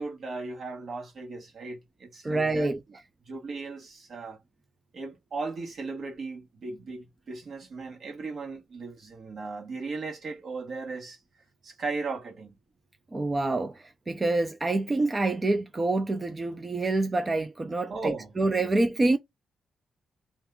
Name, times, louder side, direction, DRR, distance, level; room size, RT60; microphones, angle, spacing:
voice 1, 0.0-4.4 4.9-11.2 11.6-12.5 17.9-18.4, right 3 dB, 65° right, 1.2 m, -37 dB
voice 2, 2.2-2.8 13.1-19.2, right 2 dB, 30° right, 0.5 m, -27 dB
2.6 x 2.2 x 3.6 m
supercardioid pair, 55°, 0 cm